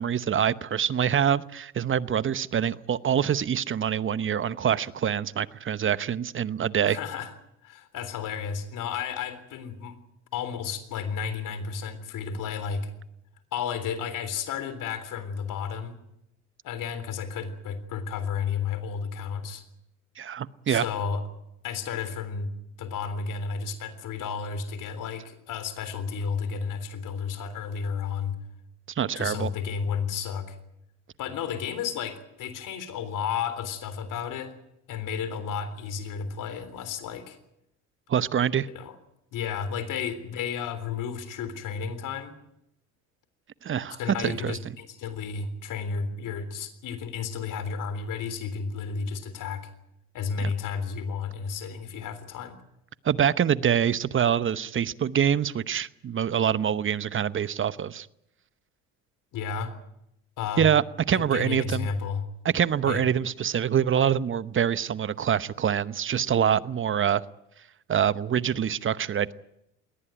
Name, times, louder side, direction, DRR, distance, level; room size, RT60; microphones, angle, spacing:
voice 1, 0.0-7.0 20.2-20.8 29.0-29.5 38.1-38.7 43.6-44.6 50.4-50.5 53.0-58.1 60.6-61.9 62.4-67.2 67.9-69.3, right 8 dB, 35° right, 16 dB, 0.9 m, -25 dB
voice 2, 6.8-7.3 7.6-10.0 10.3-12.9 13.5-16.0 16.6-19.6 20.7-21.2 21.6-22.5 22.8-28.4 29.1-30.6 31.2-34.5 34.9-37.4 38.7-39.0 39.3-42.3 44.0-49.7 50.1-52.6 59.3-59.7 60.4-60.7 61.1-62.2 62.9-63.0, left 6 dB, 60° left, 12 dB, 3.7 m, -32 dB
21.5 x 18.5 x 9.0 m, 0.82 s
supercardioid pair, 80°, 35 cm